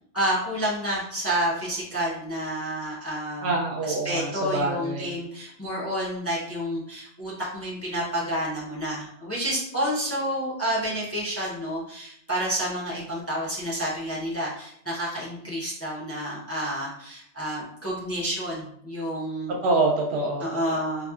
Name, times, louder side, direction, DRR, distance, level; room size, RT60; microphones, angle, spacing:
voice 1, 0.1-3.5 3.8-19.6 20.4-21.1, equal, 15° left, -6 dB, 0.6 m, -29 dB
voice 2, 3.4-5.1 19.6-20.8, right 3 dB, 70° right, 0 dB, 0.8 m, -26 dB
4.0 x 2.3 x 2.3 m, 0.71 s
omnidirectional pair, 1.2 m